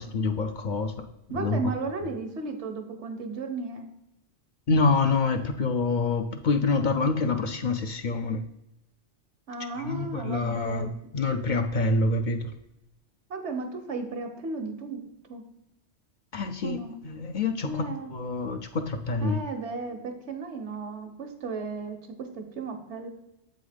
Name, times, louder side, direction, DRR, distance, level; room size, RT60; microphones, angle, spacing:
voice 1, 0.0-1.6 4.7-8.4 9.8-12.5 16.3-16.8 17.0-19.4, left 3 dB, 55° left, 7 dB, 0.6 m, -27 dB
voice 2, 1.3-3.9 9.5-11.0 13.3-15.0 15.3-15.4 16.6-17.0 17.6-18.1 19.2-23.1, right 3 dB, 85° right, 5 dB, 1.3 m, -34 dB
7.8 x 4.0 x 5.0 m, 0.87 s
omnidirectional pair, 1.1 m